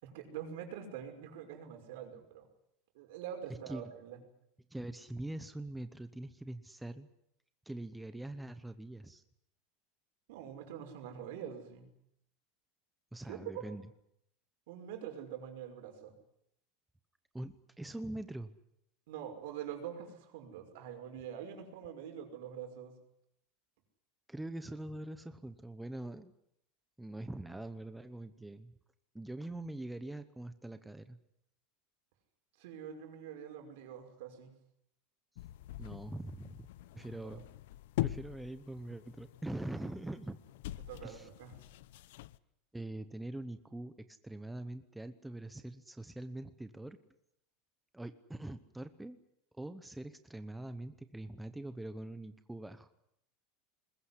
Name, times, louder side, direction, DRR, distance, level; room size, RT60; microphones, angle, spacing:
voice 1, 0.0-2.5 2.9-4.2 10.3-11.9 13.3-13.6 14.7-16.2 19.1-23.0 32.6-34.5 37.0-37.4 40.8-41.6, right 9 dB, 70° right, 5 dB, 5.7 m, -45 dB
voice 2, 4.7-7.1 7.7-9.2 13.1-13.9 17.3-18.5 24.3-26.3 27.0-28.7 29.1-31.2 35.8-36.7 36.9-37.4 38.0-40.4 41.0-41.3 42.7-47.0 47.9-49.2 49.5-52.9, right 1 dB, 5° right, 10 dB, 0.9 m, -43 dB
sound 1, 35.4-42.4, left 15 dB, 75° left, 0.9 m, -43 dB
21.0 x 21.0 x 9.9 m, 0.76 s
supercardioid pair, 170°, 0 cm